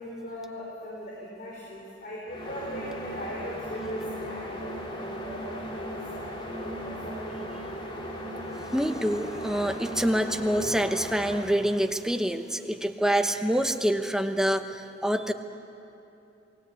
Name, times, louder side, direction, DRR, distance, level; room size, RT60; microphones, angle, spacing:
voice 1, 0.0-5.6 6.1-6.2 6.6-7.5, equal, 50° left, -4 dB, 4.7 m, -39 dB
sound 1, 2.3-11.6, equal, 30° left, 2.8 m, -37 dB
voice 2, 8.7-15.3, right 1 dB, 5° right, 6 dB, 1.0 m, -26 dB
28.5 x 19.5 x 8.4 m, 2.9 s
head